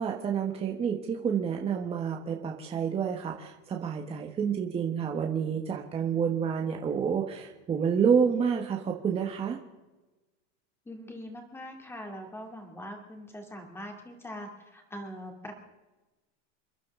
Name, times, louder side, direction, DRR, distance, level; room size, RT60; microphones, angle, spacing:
voice 1, 0.0-9.6, right 7 dB, 15° right, 1 dB, 1.2 m, -29 dB
voice 2, 10.9-15.5, equal, 5° left, 3 dB, 2.5 m, -42 dB
28.5 x 11.5 x 3.7 m, 1.1 s
supercardioid pair, 155°, 36 cm